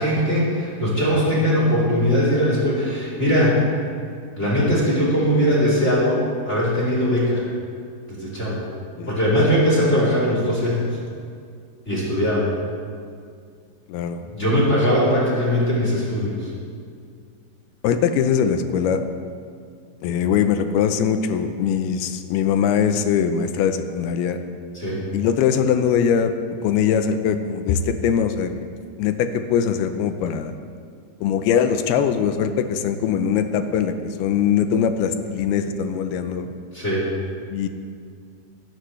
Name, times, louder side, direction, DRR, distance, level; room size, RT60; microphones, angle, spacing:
voice 1, 0.0-3.6 4.4-7.4 8.1-8.6 9.1-10.9 11.8-12.5 14.3-16.5 24.7-25.0 36.7-37.1, equal, 20° left, -7 dB, 3.3 m, -20 dB
voice 2, 13.9-14.2 17.8-19.0 20.0-24.4 25.1-26.3 26.6-28.5 29.0-30.5 31.2-36.5 37.5-37.7, left 7 dB, 85° left, 8 dB, 2.6 m, -21 dB
22.5 x 11.5 x 3.3 m, 2.2 s
omnidirectional pair, 4.7 m